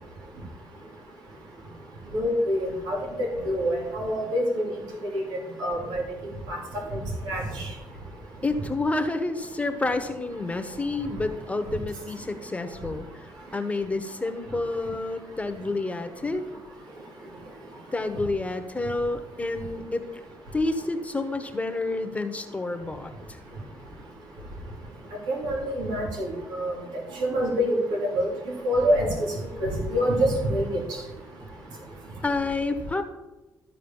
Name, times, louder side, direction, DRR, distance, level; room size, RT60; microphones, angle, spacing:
voice 1, 2.1-3.0 3.4-4.6 5.1-5.2 5.6-6.0 6.5-6.6 6.9-7.0 7.3-7.6 25.3-26.3 26.5-26.7 27.3-28.3 28.6-29.1 29.6-30.8, equal, 90° right, -1 dB, 3.1 m, -25 dB
voice 2, 8.4-16.4 17.9-20.1 20.5-23.1 32.2-33.0, left 2 dB, 20° left, 8 dB, 1.2 m, -29 dB
13.5 x 4.9 x 7.2 m, 1.1 s
cardioid pair, 75°, 7 cm